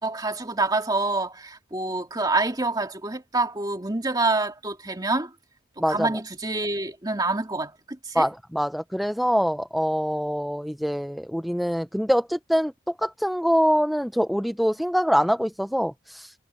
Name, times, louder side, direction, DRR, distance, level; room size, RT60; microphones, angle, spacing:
voice 1, 0.0-5.3 5.9-8.3, right 3 dB, 20° right, 2.4 m, -27 dB
voice 2, 8.1-16.3, equal, ahead, 0.6 m, -24 dB
head